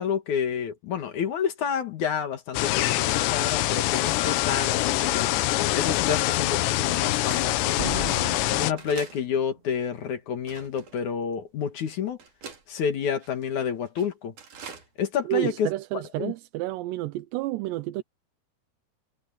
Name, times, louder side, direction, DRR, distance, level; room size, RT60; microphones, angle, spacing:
voice 1, 0.0-8.1 8.6-12.2 12.7-14.3 15.0-15.7 15.9-16.3, left 7 dB, 55° left, 2.5 m, -29 dB
sound 1, 2.5-8.7, left 16 dB, 85° left, 3.1 m, -24 dB
sound 2, 5.6-5.7 6.4-6.5 7.2-7.5 8.2-8.4 8.8-9.2 9.8-9.9 10.5-11.0 11.7-11.8 12.2-12.6 13.2-13.5 13.9-14.1 14.4-14.9 15.1-15.2 15.4-15.5, right 5 dB, 50° right, 4.2 m, -43 dB
Slam, 7.8-9.7, right 4 dB, 30° right, 1.0 m, -36 dB
voice 2, 15.2-18.0, right 16 dB, 85° right, 3.0 m, -30 dB
omnidirectional pair, 4.9 m